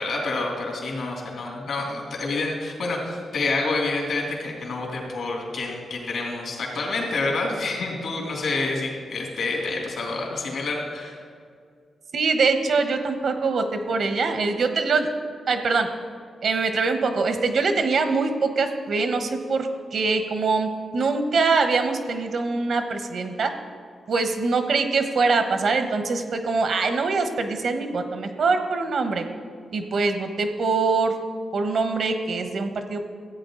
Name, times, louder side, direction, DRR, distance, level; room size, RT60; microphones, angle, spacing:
voice 1, 0.0-11.2, left 3 dB, 70° left, -1 dB, 2.9 m, -28 dB
voice 2, 12.1-15.1 15.5-15.9 16.4-23.5 24.1-29.2 29.7-31.1 31.5-33.0, right 4 dB, 65° right, 7 dB, 1.0 m, -23 dB
14.0 x 8.7 x 3.9 m, 2.2 s
wide cardioid pair, 110°, 0 cm